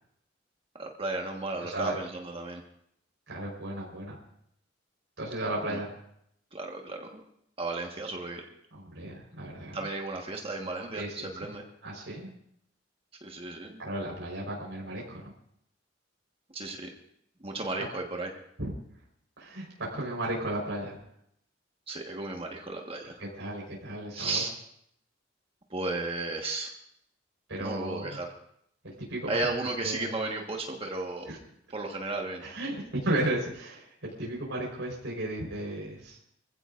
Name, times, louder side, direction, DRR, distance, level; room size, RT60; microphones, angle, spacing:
voice 1, 0.8-2.6 5.7-5.8 6.5-7.2 7.6-8.4 9.7-11.6 13.2-13.8 16.5-16.9 17.4-18.3 21.9-23.2 24.1-24.5 25.7-26.7 27.6-28.3 29.3-31.3 31.7-32.4, right 2 dB, 30° right, 1 dB, 1.4 m, -34 dB
voice 2, 1.6-2.0 3.3-4.2 5.2-5.9 8.7-9.8 10.9-11.5 11.8-12.3 13.8-15.3 18.6-18.7 19.4-21.0 23.2-24.4 27.5-28.2 28.8-29.4 29.8-30.2 31.3-31.4 32.4-36.2, right 1 dB, 90° right, -3 dB, 4.3 m, -34 dB
25.5 x 15.5 x 2.6 m, 0.72 s
head